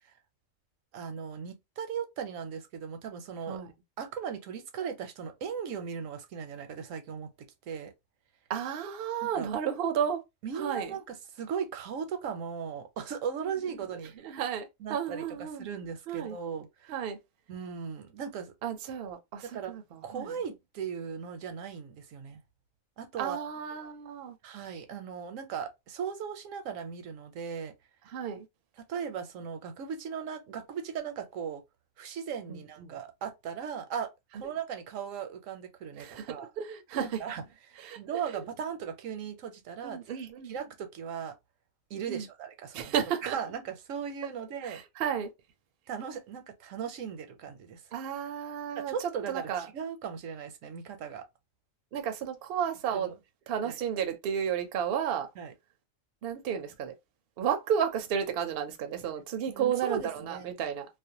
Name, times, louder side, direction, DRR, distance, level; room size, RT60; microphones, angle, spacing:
voice 1, 0.9-3.6 4.0-7.9 9.2-9.5 10.4-14.4 14.8-17.0 17.5-18.5 19.4-19.7 20.0-22.4 23.0-23.5 24.4-27.7 28.8-31.6 32.0-36.5 37.0-41.3 41.9-42.9 43.2-44.8 45.9-47.8 48.8-51.2 52.9-53.2 53.6-53.8 55.4-55.5 59.5-60.5, right 7 dB, 85° right, 1.0 m, -38 dB
voice 2, 8.5-10.2 10.6-10.9 14.2-15.7 16.1-16.4 16.9-17.2 18.6-20.3 23.2-24.4 28.1-28.5 32.5-32.9 36.0-37.2 37.8-38.0 38.3-38.4 39.8-40.5 42.1-42.3 42.7-43.4 44.6-45.3 47.9-48.9 49.3-49.7 51.9-53.1 53.5-55.3 56.2-56.9 57.4-60.9, right 8 dB, 60° right, 0.7 m, -32 dB
2.5 x 2.1 x 2.7 m
omnidirectional pair, 1.3 m